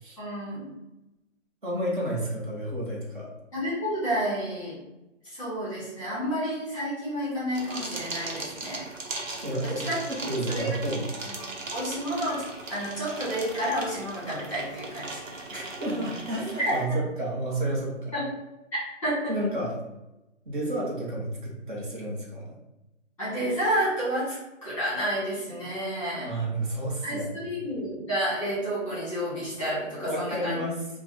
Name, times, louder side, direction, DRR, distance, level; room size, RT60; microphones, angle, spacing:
voice 1, 0.2-0.7 3.5-4.8 5.2-8.9 9.6-10.0 10.5-10.8 11.2-11.5 11.7-12.4 12.7-15.1 16.6-17.0 18.1-18.2 19.0-19.3 23.2-24.3 24.6-26.3 27.0-30.6, equal, 5° left, -10 dB, 1.4 m, -30 dB
voice 2, 1.6-3.3 9.4-11.1 15.5-18.1 19.3-19.7 20.4-22.5 26.2-27.5 30.0-30.8, right 1 dB, 40° right, -4 dB, 1.3 m, -31 dB
sound 1, 7.5-16.8, right 2 dB, 80° right, 1.2 m, -38 dB
3.1 x 2.4 x 4.0 m, 0.93 s
hypercardioid pair, 175°, 38 cm